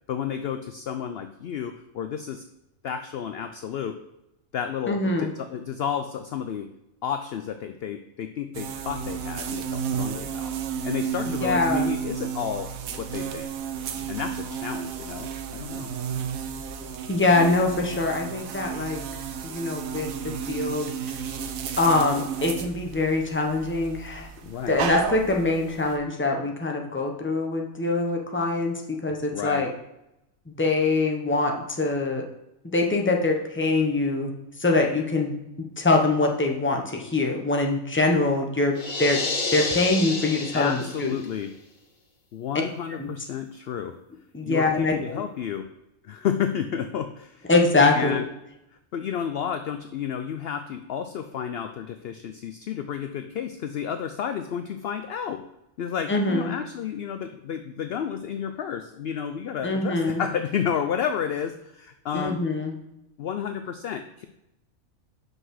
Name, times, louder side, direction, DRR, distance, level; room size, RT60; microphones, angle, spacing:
voice 1, 0.1-2.5 2.8-4.0 4.5-6.7 7.0-10.6 10.8-12.7 13.0-13.5 14.1-15.9 24.4-24.8 29.3-29.6 40.5-41.5 42.3-44.0 44.4-45.7 46.0-47.5 47.9-48.2 48.9-55.4 55.8-62.4 63.2-64.2, left 8 dB, 65° left, 8 dB, 0.6 m, -31 dB
voice 2, 4.9-5.3 11.4-11.9 17.1-19.0 19.4-21.2 21.8-24.3 24.7-29.7 30.5-32.2 32.7-35.3 35.8-39.2 39.5-41.1 43.0-43.1 44.3-45.2 47.5-48.2 56.1-56.5 59.6-60.2 62.1-62.7, left 3 dB, 10° left, 2 dB, 0.8 m, -24 dB
sound 1, 8.5-26.0, right 7 dB, 90° right, 1.2 m, -32 dB
sound 2, 38.8-41.3, left 3 dB, 40° left, 1.0 m, -30 dB
5.7 x 5.3 x 6.3 m, 0.87 s
omnidirectional pair, 1.4 m